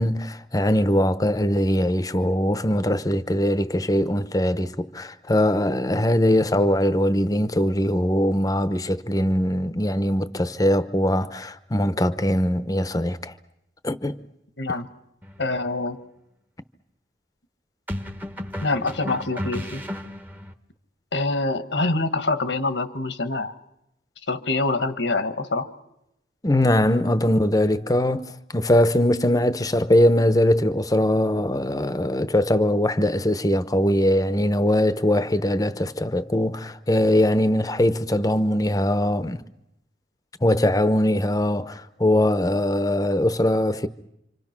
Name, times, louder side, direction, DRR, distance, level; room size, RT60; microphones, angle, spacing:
voice 1, 0.0-13.3 13.8-14.2 26.4-39.4 40.4-43.9, left 1 dB, 20° left, 0.8 m, -21 dB
voice 2, 14.6-14.9 15.4-16.0 18.6-19.8 21.1-23.5 24.3-25.7, left 2 dB, 85° left, 1.6 m, -25 dB
sound 1, 15.2-15.5 17.9-20.5, left 1 dB, 10° right, 1.0 m, -33 dB
27.5 x 26.0 x 6.0 m
head